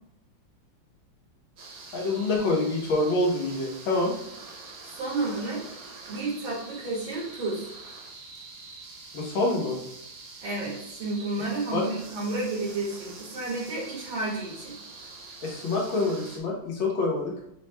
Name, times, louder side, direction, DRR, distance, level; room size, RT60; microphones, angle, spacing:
sound 1, 1.6-16.4, right 3 dB, 60° right, 1.1 m, -45 dB
voice 1, 1.9-4.1 9.1-9.8 11.7-11.8 15.4-17.3, left 2 dB, 85° left, -1 dB, 1.8 m, -26 dB
voice 2, 5.0-5.6 6.1-7.7 10.4-14.8, right 2 dB, 90° right, -4 dB, 2.4 m, -31 dB
6.3 x 2.2 x 3.0 m, 0.78 s
omnidirectional pair, 2.1 m